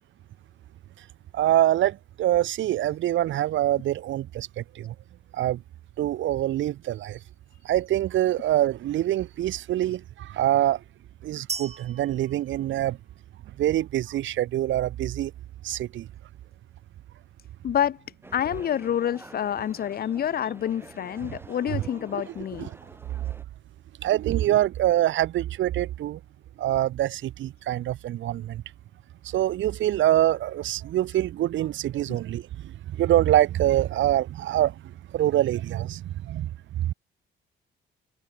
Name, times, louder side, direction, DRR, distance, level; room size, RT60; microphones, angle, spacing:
voice 1, 1.3-4.9 5.3-5.6 6.0-7.2 7.6-10.8 11.2-13.0 13.6-15.3 15.6-16.1 21.3-21.4 21.6-21.8 22.3-22.7 24.0-26.2 26.6-28.6 29.2-36.9, right 13 dB, 75° right, 1.2 m, -25 dB
sound 1, 11.5-13.4, right 5 dB, 30° right, 2.1 m, -38 dB
voice 2, 17.6-18.0 18.3-22.7 32.1-32.2, left 10 dB, 50° left, 0.7 m, -28 dB
sound 2, 18.2-23.4, right 1 dB, 10° right, 7.6 m, -48 dB
cardioid pair, 90°, 20 cm